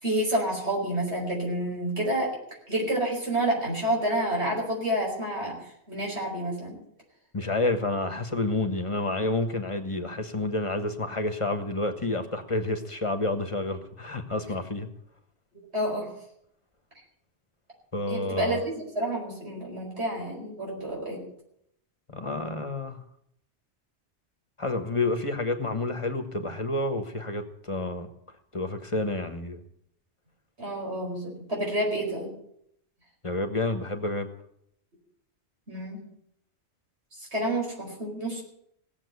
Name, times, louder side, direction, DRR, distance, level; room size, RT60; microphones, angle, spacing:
voice 1, 0.0-2.3 2.7-5.6 5.9-6.8 15.7-16.1 18.1-21.2 30.6-32.3 35.7-36.0 37.3-38.4, right 1 dB, 70° right, -1 dB, 5.2 m, -29 dB
voice 2, 7.3-14.9 17.9-18.6 22.1-23.0 24.6-28.1 28.5-29.6 33.2-34.3, left 2 dB, 30° left, 7 dB, 1.3 m, -29 dB
17.0 x 7.4 x 9.5 m, 0.72 s
omnidirectional pair, 1.1 m